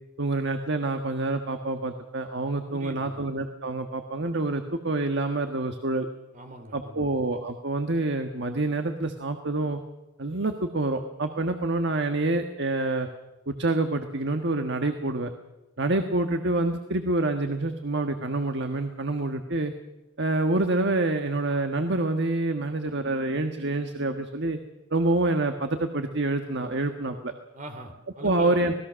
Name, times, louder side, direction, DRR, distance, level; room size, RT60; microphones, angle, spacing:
voice 1, 0.2-6.1 6.7-9.8 10.2-13.1 13.5-15.3 15.8-19.7 20.2-24.6 24.9-27.3 28.2-28.7, right 2 dB, 60° right, 6 dB, 1.5 m, -27 dB
voice 2, 2.7-3.2 6.3-7.1 27.5-28.6, right 1 dB, 40° right, 6 dB, 2.8 m, -40 dB
26.0 x 19.5 x 6.4 m, 1.0 s
head